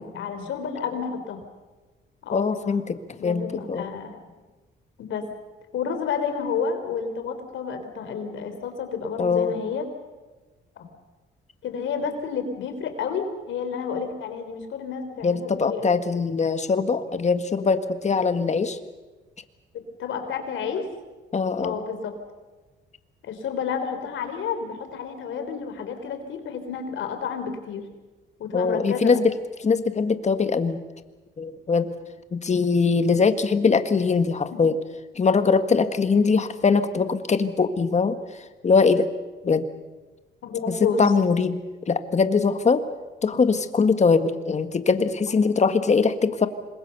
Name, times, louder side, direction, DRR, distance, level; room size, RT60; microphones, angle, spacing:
voice 1, 0.0-1.4 2.2-2.7 3.2-4.2 5.0-5.2 5.7-9.9 11.6-16.0 19.7-20.9 21.6-22.2 23.2-27.8 28.4-29.2 40.4-41.0, left 6 dB, 75° left, 7 dB, 3.8 m, -30 dB
voice 2, 2.3-3.9 9.2-9.6 15.2-18.8 21.3-21.8 28.5-29.3 29.6-30.8 31.4-31.9 32.3-34.8 35.2-38.2 38.6-39.1 39.4-39.7 40.7-41.6 41.9-42.8 43.2-46.5, left 5 dB, 35° left, 10 dB, 1.7 m, -22 dB
26.5 x 21.5 x 6.8 m, 1.2 s
cardioid pair, 90°, 20 cm